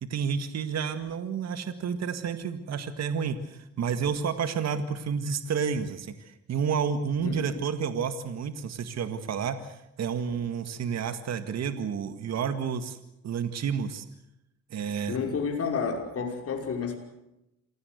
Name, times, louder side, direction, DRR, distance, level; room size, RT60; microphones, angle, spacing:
voice 1, 0.0-13.0 13.2-14.1 14.7-15.2, right 6 dB, 60° right, 10 dB, 1.8 m, -30 dB
voice 2, 7.2-7.6 15.1-17.0, left 5 dB, 50° left, 2 dB, 5.7 m, -30 dB
27.0 x 17.5 x 8.1 m, 0.87 s
cardioid pair, 90°, 30 cm